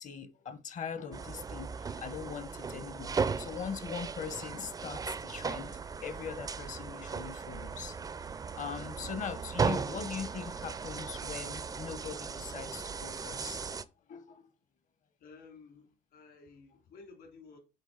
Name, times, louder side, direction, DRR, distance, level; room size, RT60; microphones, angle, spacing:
voice 1, 0.0-8.0 8.6-13.7 14.1-14.5, left 6 dB, 45° left, 0.9 m, -41 dB
sound 1, 1.1-13.8, right 5 dB, 20° right, 0.4 m, -37 dB
voice 2, 15.2-17.6, left 4 dB, 70° left, 2.5 m, -54 dB
8.3 x 3.2 x 3.9 m
cardioid pair, 110°, 17 cm